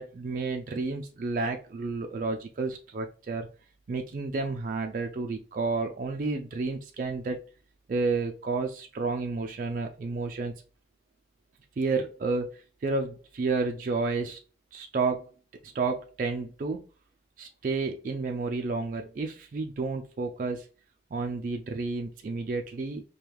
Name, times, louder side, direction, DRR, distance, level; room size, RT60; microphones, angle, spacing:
voice 1, 0.0-3.5 3.9-7.4 7.9-10.5 11.8-14.4 14.7-15.3 15.6-16.8 17.4-20.7 21.1-23.0, right 3 dB, 45° right, 3 dB, 0.3 m, -31 dB
4.5 x 2.2 x 3.4 m, 0.37 s
head